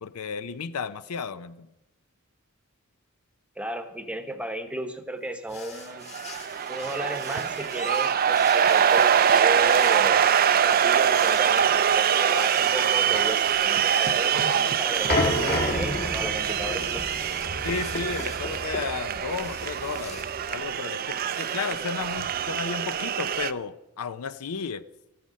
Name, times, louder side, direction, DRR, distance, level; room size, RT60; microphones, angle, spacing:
voice 1, 0.0-1.7 17.6-24.8, left 5 dB, 75° left, 14 dB, 0.6 m, -33 dB
voice 2, 3.6-6.0 6.7-10.2 10.6-17.1, right 1 dB, 5° right, 8 dB, 0.9 m, -34 dB
sound 1, 5.5-22.9, left 4 dB, 30° left, 1.6 m, -46 dB
sound 2, 5.9-23.5, right 8 dB, 40° right, 0.4 m, -24 dB
sound 3, 15.1-20.5, left 1 dB, 45° left, 2.0 m, -30 dB
14.0 x 9.4 x 6.3 m, 0.94 s
head